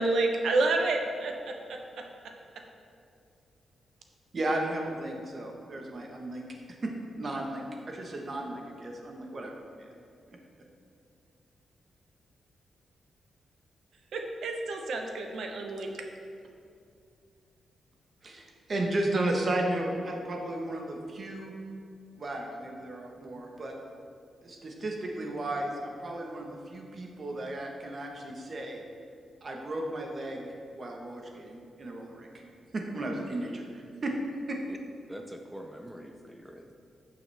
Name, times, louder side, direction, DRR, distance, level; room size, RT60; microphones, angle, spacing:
voice 1, 0.0-2.0 14.1-15.9, right 2 dB, 70° right, 3 dB, 0.8 m, -29 dB
voice 2, 4.3-6.4 6.8-6.9 7.2-9.9 10.3-10.4 18.2-18.4 18.7-21.5 22.2-23.8 24.4-28.8 29.4-32.3 32.7-34.1 34.5-34.6, right 1 dB, 35° right, 1 dB, 1.2 m, -34 dB
voice 3, 32.9-33.3 34.7-34.8 35.1-36.8, equal, ahead, 4 dB, 0.4 m, -45 dB
11.5 x 7.0 x 3.4 m, 2.4 s
wide cardioid pair, 150°, 0 cm